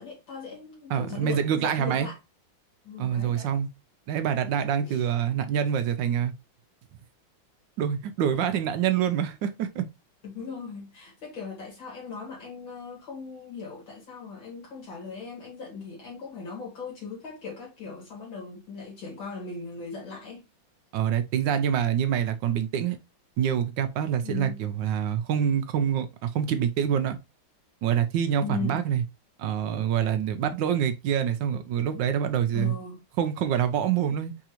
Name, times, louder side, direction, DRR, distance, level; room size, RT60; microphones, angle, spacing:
voice 1, 0.0-2.2 2.8-3.6 4.8-5.0 10.2-20.4 24.2-24.6 28.4-28.9 32.5-33.0 34.1-34.2, left 5 dB, 70° left, 2.8 m, -38 dB
voice 2, 0.9-2.1 3.0-3.7 4.1-6.3 7.8-9.8 20.9-23.0 23.4-27.2 27.8-29.0 29.4-32.7 33.2-34.3, right 9 dB, 75° right, 1.2 m, -26 dB
4.8 x 3.6 x 2.9 m
omnidirectional pair, 2.2 m